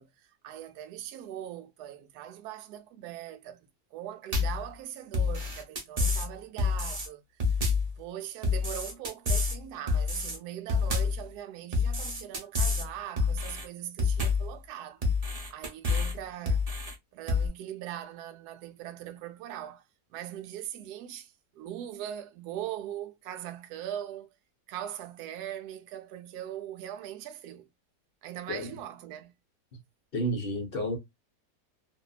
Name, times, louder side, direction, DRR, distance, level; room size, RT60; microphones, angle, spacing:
voice 1, 0.0-3.7 3.9-7.2 8.0-15.1 15.5-16.6 17.1-19.8 20.1-24.3 24.7-27.7 28.2-29.3, right 11 dB, 80° right, 1.1 m, -41 dB
sound 1, 4.3-4.6 5.1-6.3 6.6-7.1 7.4-7.9 8.4-9.6 9.9-10.4 10.7-11.2 11.7-12.9 13.2-13.6 14.0-14.5 15.0-16.1 16.5-16.9 17.3-17.5, left 4 dB, 35° right, 0.7 m, -28 dB
voice 2, 30.1-31.0, equal, 45° left, 0.8 m, -30 dB
2.7 x 2.5 x 2.2 m
omnidirectional pair, 1.7 m